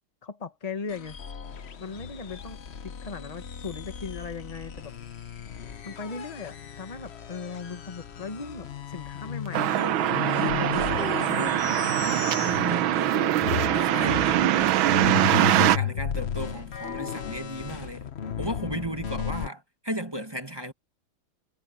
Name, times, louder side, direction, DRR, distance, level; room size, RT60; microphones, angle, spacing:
voice 1, 0.2-1.2 1.8-4.9 5.8-11.9, left 5 dB, 20° left, 1.4 m, -38 dB
sound 1, 0.9-13.2 13.4-19.5, left 8 dB, 50° left, 0.8 m, -35 dB
sound 2, 9.5-15.8, right 13 dB, 85° right, 1.5 m, -23 dB
voice 2, 12.4-15.0 15.6-18.1 18.4-20.7, right 1 dB, 15° right, 1.2 m, -35 dB
omnidirectional pair, 2.2 m